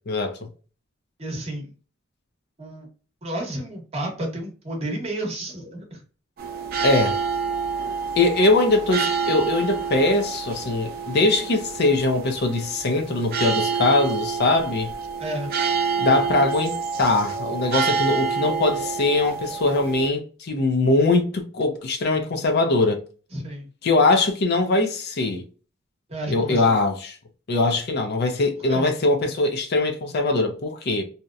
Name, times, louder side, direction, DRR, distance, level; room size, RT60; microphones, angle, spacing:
voice 1, 0.1-0.5 6.8-7.2 8.2-14.9 16.0-23.0 23.8-25.4 26.3-27.1 27.5-31.0, left 2 dB, 55° left, 0.5 m, -21 dB
voice 2, 1.2-1.7 2.6-2.9 3.2-6.0 15.2-15.5 23.3-23.7 26.1-26.7 28.7-28.8, right 1 dB, 30° right, 0.9 m, -31 dB
sound 1, 6.4-20.1, right 5 dB, 50° right, 0.4 m, -28 dB
2.7 x 2.0 x 2.3 m
head